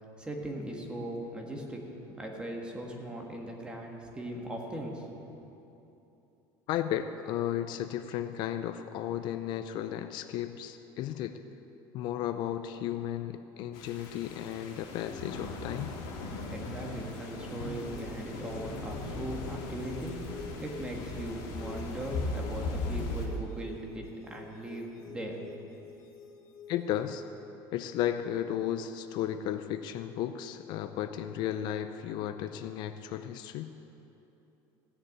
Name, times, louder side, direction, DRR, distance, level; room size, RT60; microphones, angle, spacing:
voice 1, 0.2-1.8 2.2-5.2 16.2-25.4, right 1 dB, 10° right, 0 dB, 1.7 m, -39 dB
voice 2, 6.7-11.4 11.9-16.0 26.7-27.2 27.7-33.7, left 11 dB, 55° left, 9 dB, 0.5 m, -34 dB
sound 1, 13.7-23.3, left 2 dB, 75° left, 2.7 m, -38 dB
sound 2, 17.1-27.1, left 6 dB, 40° left, 1.5 m, -50 dB
16.0 x 7.0 x 8.8 m, 3.0 s
cardioid pair, 145°, 9 cm